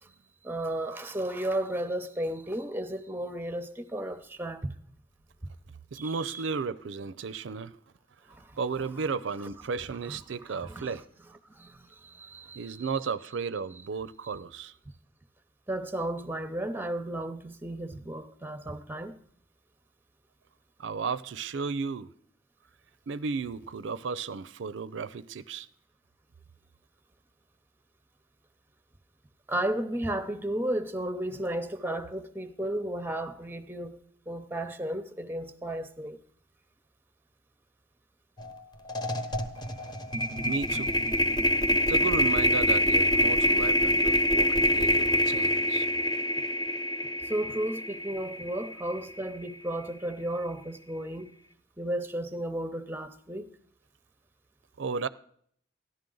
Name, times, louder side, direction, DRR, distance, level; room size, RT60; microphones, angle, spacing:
voice 1, 0.4-4.7 6.0-6.4 8.3-8.6 9.4-9.5 10.1-10.2 10.5-11.0 11.5-12.9 15.7-19.2 29.5-34.0 34.3-36.2 47.2-51.3 51.8-53.5, right 1 dB, 10° right, 0.7 m, -34 dB
voice 2, 5.9-7.8 8.6-11.1 12.5-14.7 20.8-22.1 23.1-25.7 40.4-41.0 41.9-45.9 54.8-55.1, right 5 dB, 90° right, 0.5 m, -34 dB
sound 1, 38.4-38.6 38.9-49.1, equal, 25° left, 1.0 m, -26 dB
14.5 x 11.0 x 3.8 m
head